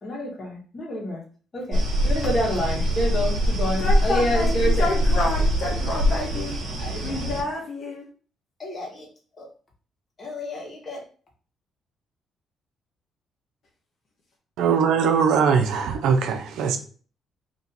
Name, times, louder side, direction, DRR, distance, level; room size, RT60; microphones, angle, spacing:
voice 1, 0.0-1.2 1.5-5.0 5.8-5.9 6.8-7.2 8.6-9.1 9.4-9.5 10.2-11.0, equal, 35° left, 1.5 m, -28 dB
sound 1, 1.7-7.4, equal, 65° right, 1.1 m, -23 dB
voice 2, 3.8-6.5 7.0-8.0, left 2 dB, 65° left, 1.1 m, -28 dB
voice 3, 14.6-16.8, right 6 dB, 85° right, 0.5 m, -21 dB
3.0 x 2.8 x 4.0 m
cardioid pair, 90°, 0 cm